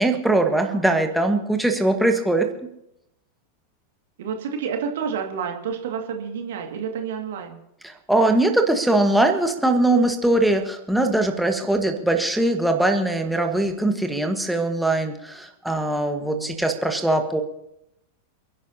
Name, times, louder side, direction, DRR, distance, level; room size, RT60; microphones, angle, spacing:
voice 1, 0.0-2.5 7.8-17.4, right 2 dB, ahead, 4 dB, 1.4 m, -21 dB
voice 2, 0.5-0.9 4.2-7.6 16.0-16.6, right 6 dB, 55° right, 4 dB, 2.1 m, -30 dB
28.5 x 11.0 x 2.8 m, 0.83 s
figure-of-eight pair, 90°, 0 cm